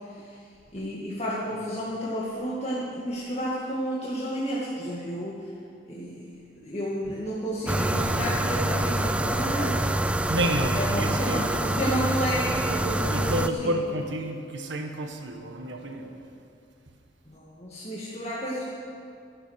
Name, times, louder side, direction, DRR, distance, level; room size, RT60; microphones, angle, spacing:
voice 1, 0.7-5.4 5.9-6.3 6.6-9.9 10.2-13.7 17.3-18.6, equal, 35° left, -7 dB, 1.9 m, -31 dB
sound 1, 7.7-13.5, right 1 dB, 5° right, 0.4 m, -26 dB
voice 2, 10.3-11.6 13.1-16.1, right 1 dB, 85° right, 4 dB, 1.5 m, -30 dB
14.0 x 11.0 x 6.5 m, 2.4 s
head